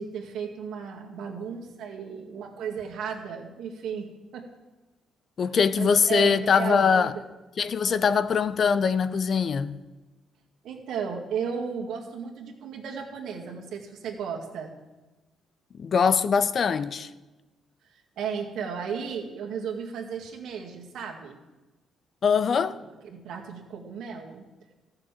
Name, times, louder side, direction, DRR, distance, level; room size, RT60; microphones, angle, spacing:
voice 1, 0.0-4.5 5.8-7.2 10.6-14.7 17.9-21.4 22.5-24.4, right 6 dB, 80° right, 2.0 m, -35 dB
voice 2, 5.4-7.1 7.6-9.8 15.7-17.1 22.2-22.8, left 6 dB, 50° left, 0.6 m, -22 dB
14.5 x 6.8 x 7.4 m
cardioid pair, 90°, 0 cm